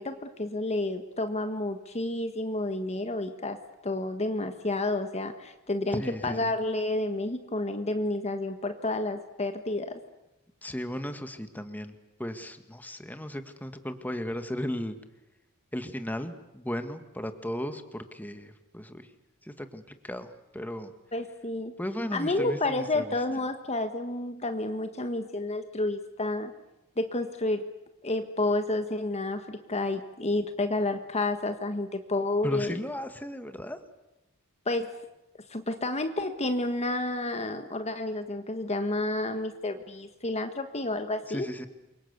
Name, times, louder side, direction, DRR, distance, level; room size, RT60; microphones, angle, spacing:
voice 1, 0.0-10.0 21.1-21.7 22.1-26.5 27.0-27.7 28.0-32.8 34.6-34.9 35.5-41.5, left 2 dB, 30° left, 8 dB, 1.5 m, -30 dB
voice 2, 5.9-6.5 10.6-11.9 12.2-15.0 15.7-19.1 19.4-20.9 21.8-23.1 32.4-33.8 41.3-41.7, equal, 10° left, 8 dB, 1.7 m, -36 dB
28.5 x 24.0 x 8.2 m, 0.94 s
head